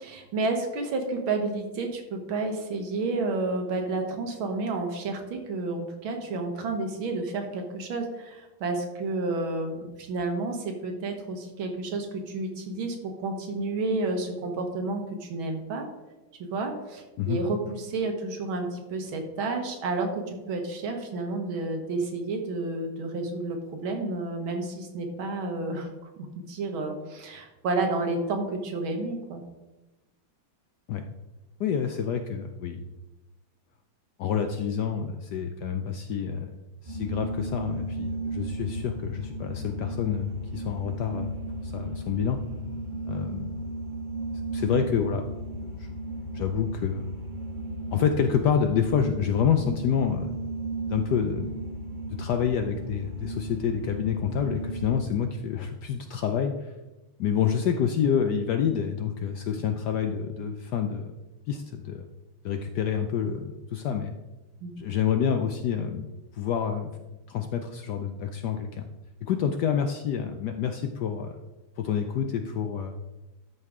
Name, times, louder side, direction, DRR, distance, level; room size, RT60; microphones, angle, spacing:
voice 1, 0.0-15.9 16.4-25.9 26.2-29.4 64.6-64.7, right 3 dB, 75° right, 4 dB, 2.0 m, -31 dB
voice 2, 31.6-32.8 34.2-36.5 36.8-41.4 41.6-42.4 43.1-43.6 44.5-45.2 45.6-45.9 46.3-47.1 47.9-50.3 50.9-51.5 52.2-56.7 57.2-61.1 61.5-62.1 62.4-64.1 64.8-66.1 66.3-66.9 67.3-68.9 69.2-71.3 71.8-72.9, left 7 dB, 75° left, 6 dB, 1.0 m, -28 dB
sound 1, 36.9-54.9, right 1 dB, 25° right, 1.2 m, -35 dB
13.0 x 5.4 x 3.6 m, 1.1 s
omnidirectional pair, 2.3 m